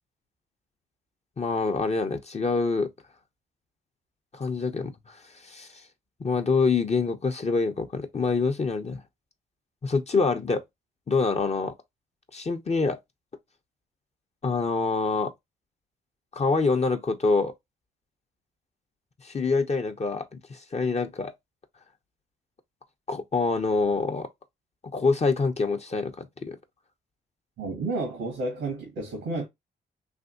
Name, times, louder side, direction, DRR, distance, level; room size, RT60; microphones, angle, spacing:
voice 1, 1.4-2.9 4.3-5.2 5.4-5.7 6.2-9.0 9.8-10.6 11.1-11.7 12.3-13.0 14.4-15.3 16.3-17.5 19.2-21.3 23.1-24.3 24.8-26.6, left 4 dB, 35° left, 0.7 m, -26 dB
voice 2, 27.6-29.5, right 2 dB, 85° right, 1.4 m, -31 dB
3.4 x 2.7 x 2.5 m
supercardioid pair, 55°, 19 cm